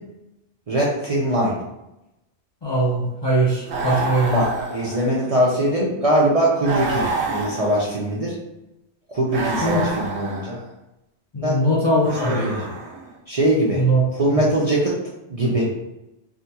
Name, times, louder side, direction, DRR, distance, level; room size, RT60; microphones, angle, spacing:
voice 1, 0.7-1.6 4.3-8.3 9.1-10.6 11.4-11.6 12.3-12.7 13.3-13.8 14.2-15.0 15.3-15.8, right 1 dB, 50° right, -5 dB, 0.4 m, -21 dB
voice 2, 2.6-4.4 9.6-9.8 11.3-12.5 13.7-14.0 14.3-14.4, right 1 dB, 40° left, -6 dB, 0.4 m, -21 dB
sound 1, 3.7-5.4 6.6-8.2 9.3-10.6 12.0-13.1, right 3 dB, 80° right, 0.9 m, -28 dB
3.5 x 2.2 x 2.7 m, 0.92 s
omnidirectional pair, 1.1 m